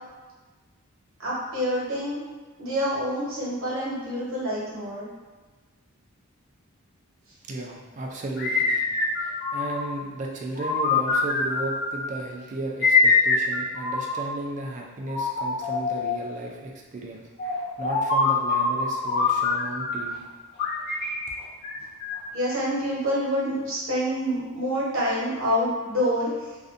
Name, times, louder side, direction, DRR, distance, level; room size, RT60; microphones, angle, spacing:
voice 1, 1.2-2.2 2.6-5.1 9.2-9.3 20.7-20.8 22.3-26.3, equal, 60° right, -7 dB, 0.9 m, -27 dB
voice 2, 7.5-8.8 9.5-17.2 17.8-20.2, right 2 dB, 35° right, 0 dB, 0.3 m, -34 dB
sound 1, 8.4-10.0 10.6-12.1 12.8-14.4 15.1-16.3 17.4-20.1 20.6-22.4, left 4 dB, 45° left, 0.4 m, -25 dB
2.5 x 2.2 x 2.4 m, 1.3 s
head